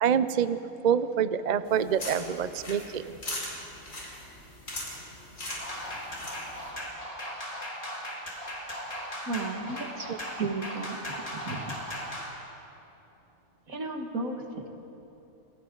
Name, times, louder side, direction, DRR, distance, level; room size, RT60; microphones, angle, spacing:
voice 1, 0.0-3.2, right 8 dB, 50° right, 13 dB, 0.5 m, -26 dB
sound 1, 1.7-6.7, left 1 dB, 70° left, 4.9 m, -40 dB
sound 2, 5.5-12.3, equal, 25° left, 3.5 m, -38 dB
voice 2, 9.3-10.1 10.3-11.0 11.3-11.8 13.7-14.7, right 3 dB, 85° right, 2 dB, 2.3 m, -34 dB
30.0 x 23.0 x 3.9 m, 3.0 s
omnidirectional pair, 1.4 m